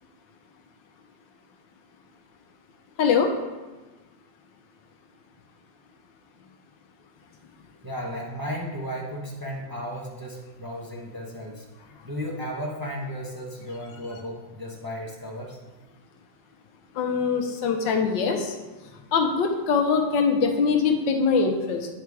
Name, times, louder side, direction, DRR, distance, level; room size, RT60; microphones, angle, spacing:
voice 1, 3.0-3.3 16.9-18.5 19.1-21.9, left 5 dB, 65° left, 4 dB, 1.5 m, -23 dB
voice 2, 7.8-11.6 12.0-15.6 18.9-19.0, equal, 20° right, -2 dB, 0.5 m, -34 dB
9.0 x 5.7 x 4.7 m, 1.2 s
omnidirectional pair, 2.2 m